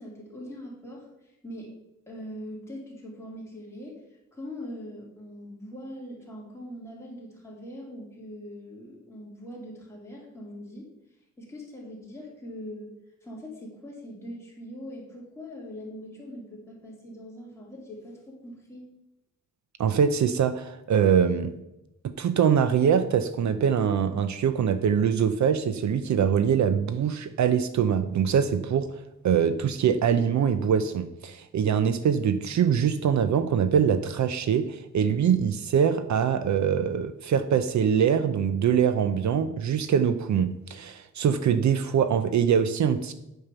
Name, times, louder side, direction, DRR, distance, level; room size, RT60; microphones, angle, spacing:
voice 1, 0.0-1.7 2.1-4.0 4.3-10.9 11.4-12.9 13.2-18.9, equal, 10° left, -4 dB, 2.7 m, -42 dB
voice 2, 19.8-21.5 22.0-28.9 29.2-43.1, right 7 dB, 65° right, 11 dB, 0.6 m, -23 dB
8.9 x 5.6 x 6.7 m, 0.92 s
wide cardioid pair, 175°, 31 cm